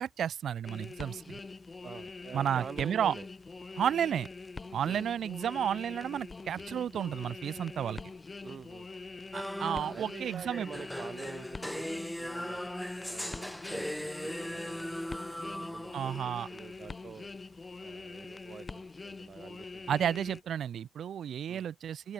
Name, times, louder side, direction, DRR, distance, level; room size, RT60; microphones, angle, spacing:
voice 1, 0.0-1.4 2.3-3.1 3.8-4.3 4.7-8.0 9.3-10.7 15.9-16.5 19.9-22.1, right 9 dB, 75° right, 0.9 m, -32 dB
sound 1, 0.6-20.4, left 3 dB, 25° left, 4.1 m, -44 dB
voice 2, 1.8-3.3 4.8-5.0 8.4-8.9 9.9-11.9 12.1-12.6 13.1-15.0 15.5-17.3 17.8-20.2 21.5-21.7, right 6 dB, 45° right, 4.5 m, -47 dB
sound 2, 9.3-16.6, equal, ahead, 0.7 m, -39 dB
open air
wide cardioid pair, 165°, 0 cm